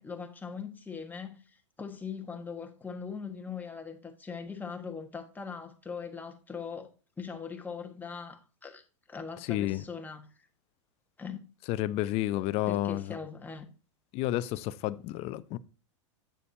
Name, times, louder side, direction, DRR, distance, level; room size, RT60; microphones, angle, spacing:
voice 1, 0.0-1.4 1.8-6.9 7.2-8.8 9.1-10.5 11.2-11.5 12.7-13.7, left 6 dB, 10° left, 1.4 m, -40 dB
voice 2, 9.5-9.8 11.7-13.2 14.1-15.6, left 15 dB, 40° left, 0.6 m, -30 dB
8.8 x 6.7 x 2.7 m
hypercardioid pair, 110°, 16 cm